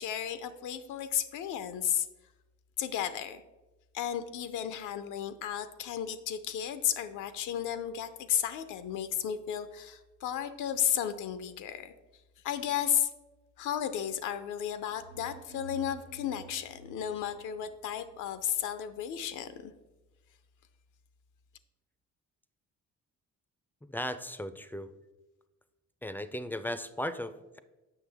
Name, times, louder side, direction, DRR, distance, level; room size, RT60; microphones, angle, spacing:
voice 1, 0.0-2.1 2.8-3.4 3.9-11.9 12.4-13.1 13.6-19.7, left 10 dB, 85° left, 11 dB, 0.6 m, -33 dB
sound 1, 14.6-18.3, right 7 dB, 90° right, 0.6 m, -51 dB
voice 2, 23.8-24.9 26.0-27.6, left 1 dB, 5° left, 12 dB, 0.3 m, -36 dB
7.4 x 5.9 x 3.4 m, 1.1 s
cardioid pair, 90°, 30 cm